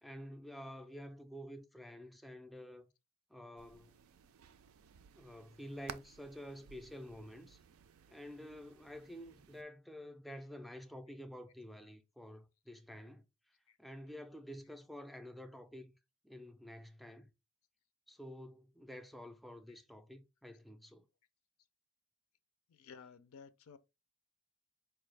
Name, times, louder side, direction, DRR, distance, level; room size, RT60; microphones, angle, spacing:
voice 1, 0.0-2.9 3.3-3.9 5.0-7.6 8.1-13.3 13.8-15.9 16.2-17.3 18.1-21.0, equal, ahead, 0.4 m, -50 dB
sound 1, 3.6-9.6, right 7 dB, 70° right, 0.4 m, -56 dB
voice 2, 22.7-23.8, left 6 dB, 75° left, 0.4 m, -55 dB
4.6 x 2.3 x 3.2 m
head